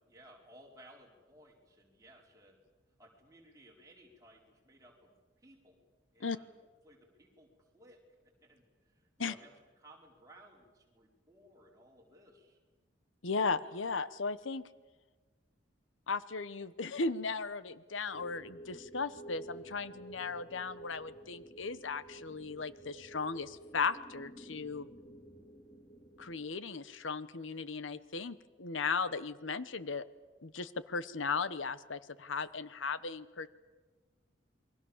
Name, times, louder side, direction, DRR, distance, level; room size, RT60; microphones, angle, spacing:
voice 1, 0.0-2.6 3.0-5.8 6.1-6.5 6.8-12.6, right 1 dB, 15° right, -1 dB, 4.6 m, -60 dB
voice 2, 13.2-14.6 16.1-24.9 26.2-30.0 30.4-33.5, left 4 dB, 90° left, 15 dB, 1.0 m, -36 dB
sound 1, 18.1-26.4, right 1 dB, 25° left, 2.0 m, -51 dB
28.0 x 23.0 x 7.3 m, 1.3 s
head